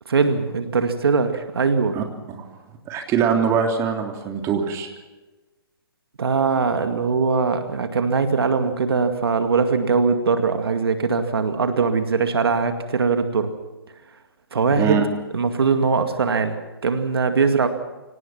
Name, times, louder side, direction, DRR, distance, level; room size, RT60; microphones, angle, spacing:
voice 1, 0.1-2.0 6.2-13.5 14.5-15.0 15.3-16.6 16.8-17.7, right 5 dB, 75° right, 7 dB, 2.2 m, -21 dB
voice 2, 1.9-2.5 2.9-4.9 14.8-15.0, right 7 dB, 25° right, 3 dB, 3.2 m, -23 dB
24.5 x 18.5 x 6.0 m, 1.2 s
hypercardioid pair, 135°, 13 cm